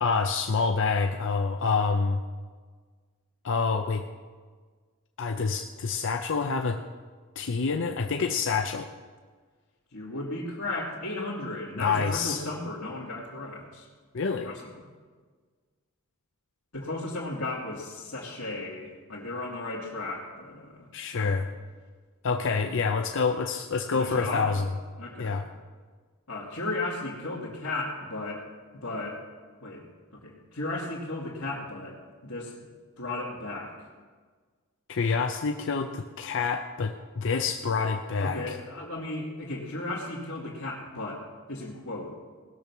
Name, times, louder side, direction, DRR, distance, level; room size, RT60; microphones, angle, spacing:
voice 1, 0.0-2.2 3.4-4.0 5.2-6.8 7.4-8.9 11.8-12.4 14.1-14.5 20.9-21.5 22.2-24.7 25.2-25.4 34.9-38.5, left 4 dB, 60° left, 5 dB, 0.6 m, -27 dB
voice 2, 9.9-13.9 14.4-14.9 16.7-20.9 21.1-21.3 23.9-24.5 25.0-25.4 26.3-28.4 28.8-29.2 29.6-29.8 30.1-32.6 33.0-33.9 38.2-42.2, left 2 dB, 75° left, -7 dB, 2.5 m, -35 dB
19.0 x 7.0 x 6.1 m, 1.5 s
head